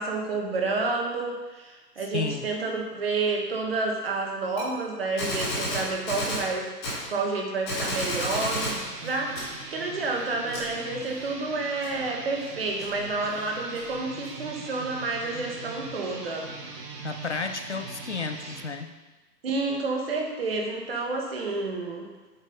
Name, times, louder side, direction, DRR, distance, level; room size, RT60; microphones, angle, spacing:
voice 1, 0.0-6.7 7.1-16.5 19.4-22.1, right 3 dB, 35° right, 1 dB, 1.3 m, -29 dB
voice 2, 2.1-2.5 17.0-18.9, left 4 dB, 45° left, 8 dB, 0.5 m, -32 dB
Gunshot gunfire, 4.6-4.7 5.2-6.5 6.8-7.0 7.7-8.8, equal, 15° left, 1.6 m, -30 dB
sound 1, 8.3-18.7, right 3 dB, 75° right, 1.4 m, -41 dB
sound 2, 8.5-14.3, equal, ahead, 0.7 m, -47 dB
7.5 x 5.2 x 5.2 m, 1.2 s
hypercardioid pair, 160°, 49 cm